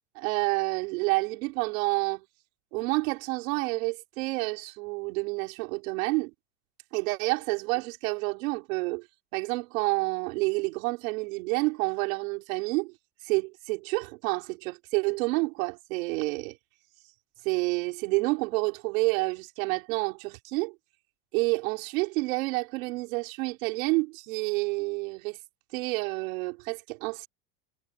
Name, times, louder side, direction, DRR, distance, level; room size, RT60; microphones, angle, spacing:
voice 1, 0.2-2.2 2.7-6.3 6.9-9.1 9.3-12.9 13.2-16.6 17.4-20.8 21.3-25.4 25.7-27.3, right 26 dB, 70° right, 3.7 m, -29 dB
supercardioid pair, 140°, 42 cm